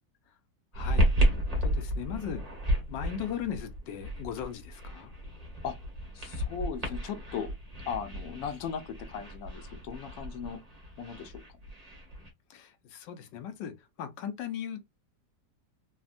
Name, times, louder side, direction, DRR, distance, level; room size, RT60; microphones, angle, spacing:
voice 1, 0.7-1.3 1.6-2.5 2.9-5.2 12.5-14.9, left 9 dB, 90° left, 1.3 m, -38 dB
sound 1, 0.7-12.3, equal, 25° right, 1.0 m, -32 dB
voice 2, 6.1-7.5 7.9-10.6 11.0-11.4, left 7 dB, 70° left, 0.9 m, -37 dB
3.4 x 2.1 x 2.5 m
omnidirectional pair, 1.9 m